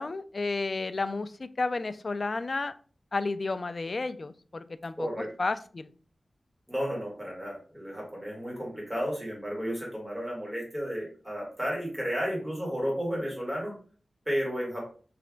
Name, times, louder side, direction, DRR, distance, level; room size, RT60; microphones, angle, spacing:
voice 1, 0.0-2.7 3.1-5.9, left 3 dB, 50° left, 12 dB, 0.3 m, -32 dB
voice 2, 6.7-13.7 14.3-14.8, equal, 15° right, -3 dB, 2.1 m, -32 dB
3.3 x 3.1 x 3.8 m, 0.41 s
wide cardioid pair, 85°, 0 cm